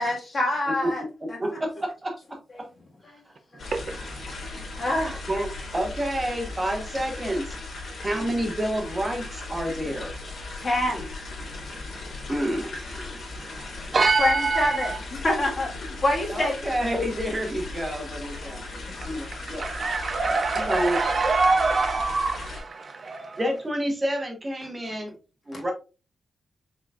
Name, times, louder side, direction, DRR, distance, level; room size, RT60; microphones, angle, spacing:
voice 1, 0.0-1.0 3.0-3.2 4.8-5.2 10.6-11.1 14.2-16.8 18.8-18.9 25.5-25.6, left 1 dB, 35° left, 1.6 m, -26 dB
voice 2, 1.2-2.7 5.0-7.5 8.0-10.1 12.3-13.2 16.3-18.8 19.0-19.7 20.5-21.0 23.4-25.1 25.5-25.7, equal, 20° right, 1.0 m, -29 dB
sound 1, 3.6-22.6, left 3 dB, 65° left, 2.4 m, -37 dB
voice 3, 13.9-15.0 19.5-23.4, right 3 dB, 35° right, 0.4 m, -24 dB
5.6 x 4.0 x 2.4 m
wide cardioid pair, 170°, 0 cm